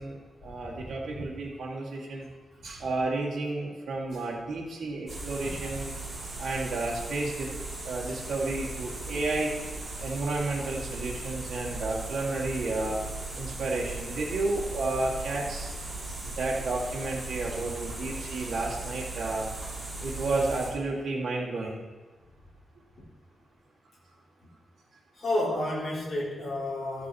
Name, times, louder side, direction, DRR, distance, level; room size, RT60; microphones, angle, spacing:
voice 1, 0.0-2.3 2.6-5.9 6.4-7.5 7.9-9.5 10.0-13.0 13.4-15.7 16.4-19.5 20.0-21.8, right 2 dB, 60° right, -4 dB, 1.7 m, -31 dB
sound 1, 5.1-20.7, right 2 dB, 20° right, 3.4 m, -38 dB
voice 2, 25.2-27.1, left 1 dB, 45° left, -6 dB, 3.5 m, -30 dB
13.5 x 6.0 x 4.7 m, 1.3 s
wide cardioid pair, 150°, 0 cm